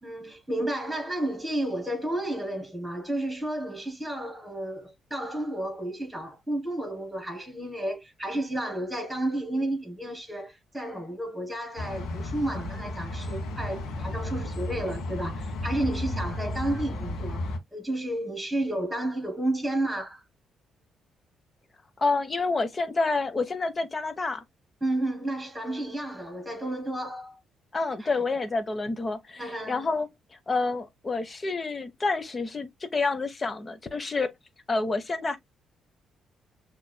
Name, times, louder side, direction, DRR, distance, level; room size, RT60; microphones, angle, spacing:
voice 1, 0.0-17.4 17.7-20.2 24.8-27.4 28.0-28.1 29.4-29.9, right 1 dB, 5° right, 3.5 m, -32 dB
sound 1, 11.8-17.6, left 1 dB, 75° left, 1.5 m, -33 dB
voice 2, 22.0-24.4 27.7-30.1 30.5-34.3 34.7-35.4, left 3 dB, 30° left, 1.1 m, -28 dB
6.6 x 3.2 x 2.2 m
cardioid pair, 90°, 0 cm